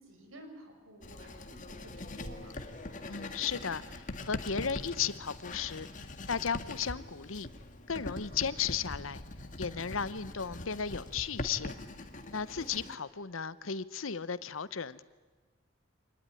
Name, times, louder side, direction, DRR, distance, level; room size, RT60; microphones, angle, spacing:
voice 1, 0.0-2.6 12.6-12.8, right 1 dB, 80° right, 5 dB, 5.9 m, -52 dB
Writing, 1.0-13.0, left 2 dB, 40° left, 1.9 m, -42 dB
voice 2, 3.1-5.9 6.3-7.5 7.9-9.2 9.6-11.8 12.3-15.0, left 6 dB, 80° left, 16 dB, 0.9 m, -35 dB
25.5 x 20.0 x 9.9 m, 1.4 s
head